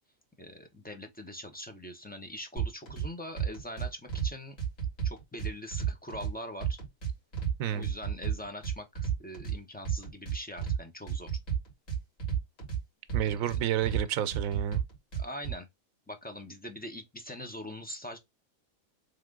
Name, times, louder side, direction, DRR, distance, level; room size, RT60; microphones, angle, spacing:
voice 1, 0.4-4.6 5.0-6.8 7.7-11.4 13.3-13.4 15.2-15.7 16.1-18.2, left 1 dB, 10° left, 0.6 m, -42 dB
sound 1, 2.6-3.1 3.4-4.3 4.6-6.3 6.6-7.5 7.8-9.6 9.8-10.8 11.1-12.8 13.1-14.0 14.3-15.5, right 8 dB, 70° left, 2.7 m, -31 dB
voice 2, 7.6-7.9 13.1-14.8, right 10 dB, 80° right, 1.0 m, -30 dB
3.6 x 3.3 x 3.6 m
omnidirectional pair, 1.4 m